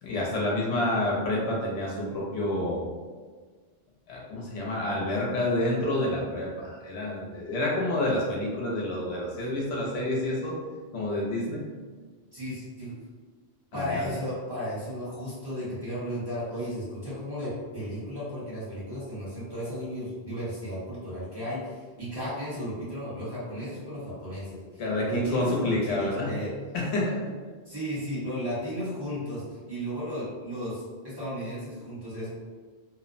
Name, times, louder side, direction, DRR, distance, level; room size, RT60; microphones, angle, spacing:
voice 1, 0.0-2.9 4.1-10.5 10.9-11.6 13.7-14.1 24.8-26.4 26.7-27.2, left 1 dB, 85° left, -3 dB, 0.9 m, -28 dB
voice 2, 12.3-12.9 13.7-26.5 27.6-32.3, equal, 25° right, -11 dB, 0.9 m, -34 dB
2.7 x 2.0 x 2.5 m, 1.5 s
omnidirectional pair, 1.1 m